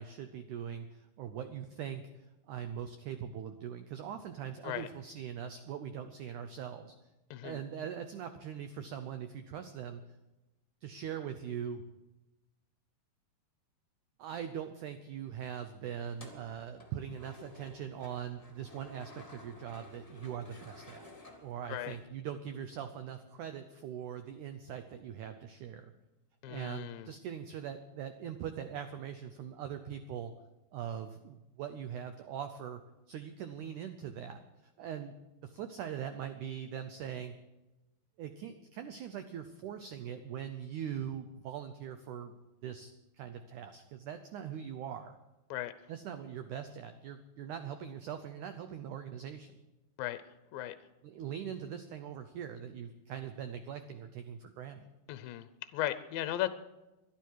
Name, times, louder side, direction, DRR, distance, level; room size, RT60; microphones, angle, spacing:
voice 1, 0.0-2.0 2.5-6.9 7.4-10.0 10.8-11.8 14.2-21.1 21.4-25.9 26.5-30.3 30.7-32.8 33.1-34.4 34.8-35.1 35.4-37.3 38.2-42.9 43.2-45.2 45.9-49.6 51.0-54.9, right 8 dB, 80° right, 9 dB, 1.8 m, -41 dB
voice 2, 7.3-7.6 21.7-22.0 26.4-27.1 45.5-45.7 50.0-50.2 50.5-50.8 55.1-55.5 55.7-56.5, left 13 dB, 80° left, 12 dB, 2.2 m, -36 dB
sound 1, 16.0-22.1, left 2 dB, 20° left, 1.0 m, -54 dB
21.5 x 12.0 x 4.7 m, 1.0 s
omnidirectional pair, 4.5 m